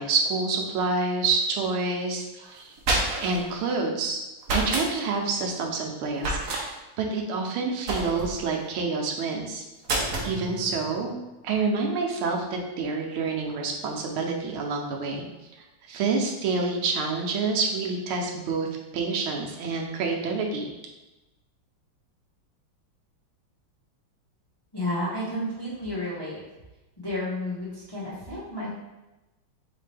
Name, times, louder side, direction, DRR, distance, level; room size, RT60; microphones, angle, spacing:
voice 1, 0.0-2.7 3.2-4.2 4.5-6.7 7.0-9.6 10.2-11.1 11.4-15.2 15.9-18.7 18.9-20.7, right 4 dB, 80° right, 1 dB, 1.6 m, -27 dB
sound 1, 2.6-3.4 4.4-4.9 6.2-6.6 7.9-8.4 9.8-10.3, right 2 dB, 60° right, 0.9 m, -27 dB
sound 2, 9.9-11.4, right 3 dB, 30° right, 0.7 m, -42 dB
voice 2, 24.7-26.4 27.0-28.7, left 1 dB, 30° left, -8 dB, 0.4 m, -31 dB
4.2 x 3.7 x 3.3 m, 1.0 s
omnidirectional pair, 2.3 m